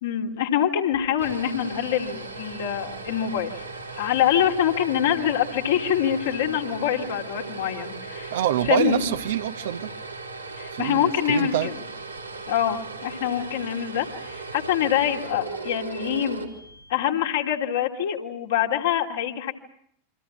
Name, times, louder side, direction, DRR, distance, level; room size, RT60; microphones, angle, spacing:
voice 1, 0.0-3.6 3.9-8.3 8.7-9.0 10.6-11.7 12.5-16.4 16.9-19.5, left 10 dB, 60° left, 1 dB, 2.8 m, -25 dB
sound 1, 0.9-17.1, right 3 dB, 90° right, 3.0 m, -37 dB
voice 2, 8.3-9.9 10.7-11.7, right 11 dB, 60° right, 9 dB, 1.1 m, -25 dB
28.5 x 25.5 x 6.1 m, 0.70 s
figure-of-eight pair, 90°, 0 cm